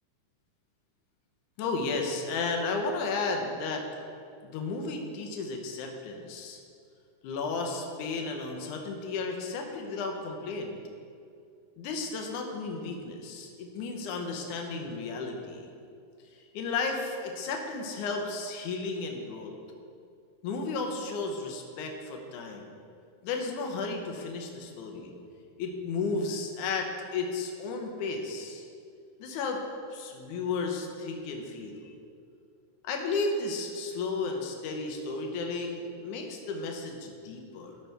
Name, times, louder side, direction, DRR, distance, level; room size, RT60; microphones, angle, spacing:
voice 1, 1.6-3.9 4.4-6.6 7.2-10.8 11.8-15.7 16.3-19.5 20.4-22.7 23.2-25.2 25.6-28.7 29.2-29.6 29.9-31.9 32.8-37.8, left 3 dB, 75° left, 2 dB, 2.0 m, -33 dB
13.5 x 5.9 x 3.3 m, 2.4 s
omnidirectional pair, 4.2 m